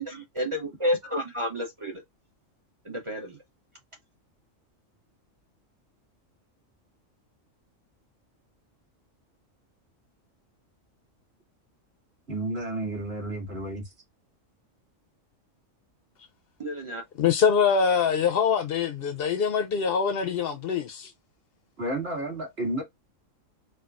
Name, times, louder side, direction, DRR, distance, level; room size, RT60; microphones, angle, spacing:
voice 1, 0.0-1.9 2.8-3.4 16.6-17.0, equal, 35° right, 0.6 m, -30 dB
voice 2, 12.3-13.9 21.8-22.8, right 1 dB, 50° right, 2.2 m, -31 dB
voice 3, 17.2-21.1, left 6 dB, 65° left, 0.6 m, -24 dB
4.5 x 2.3 x 2.4 m
omnidirectional pair, 1.4 m